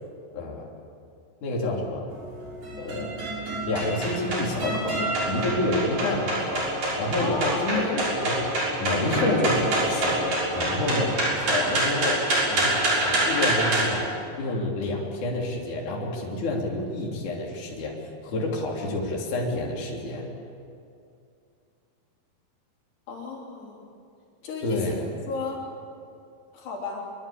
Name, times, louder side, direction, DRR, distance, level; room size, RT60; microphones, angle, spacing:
voice 1, 0.3-0.7 1.4-2.1 2.8-3.1 3.6-6.7 7.0-7.8 8.2-8.5 8.8-10.2 10.5-17.9 18.2-20.3 24.6-25.1, left 2 dB, 50° left, -2 dB, 4.5 m, -28 dB
sound 1, 2.1-13.8, right 1 dB, 55° right, 7.8 m, -26 dB
voice 2, 7.2-8.1 23.1-23.8 24.4-24.8 25.3-25.6 26.5-27.0, left 4 dB, 85° left, -2 dB, 5.7 m, -33 dB
26.0 x 23.0 x 8.7 m, 2.5 s
omnidirectional pair, 4.6 m